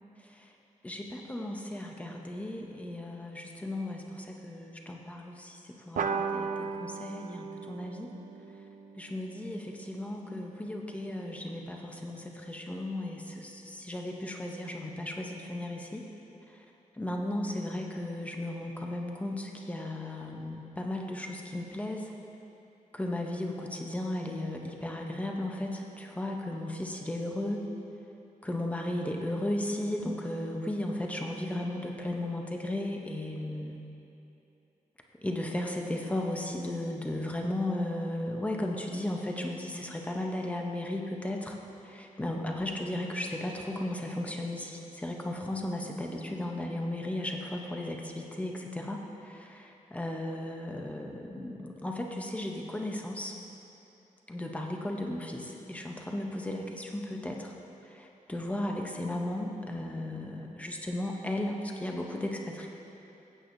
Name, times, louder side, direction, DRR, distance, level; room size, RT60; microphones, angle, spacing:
voice 1, 0.8-8.1 9.0-16.0 17.0-22.1 22.9-27.7 28.4-33.8 35.2-41.6 41.8-53.3 54.3-57.5 57.9-62.7, left 1 dB, 10° left, 1 dB, 0.7 m, -35 dB
sound 1, 6.0-10.9, right 5 dB, 70° right, 0.4 m, -37 dB
15.0 x 8.4 x 2.6 m, 2.9 s
wide cardioid pair, 175°, 14 cm